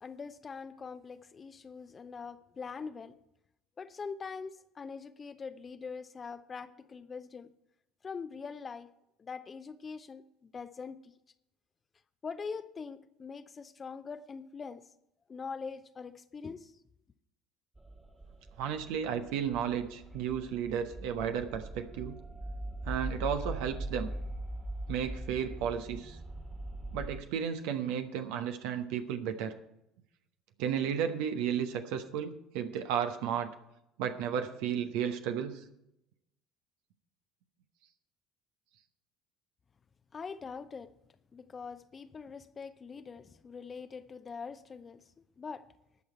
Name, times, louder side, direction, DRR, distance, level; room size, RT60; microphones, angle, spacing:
voice 1, 0.0-3.1 3.8-7.5 8.0-8.9 9.2-11.1 12.2-14.8 15.3-16.7 40.1-40.9 41.3-45.0 45.4-45.6, left 5 dB, 30° left, 0.7 m, -43 dB
sound 1, 17.7-27.2, right 1 dB, 15° right, 1.8 m, -41 dB
voice 2, 18.6-22.2 22.8-24.1 24.9-26.2 26.9-29.6 30.6-33.5 34.0-35.6, right 8 dB, 65° right, 0.9 m, -33 dB
19.0 x 6.5 x 4.5 m
figure-of-eight pair, 60°, 0 cm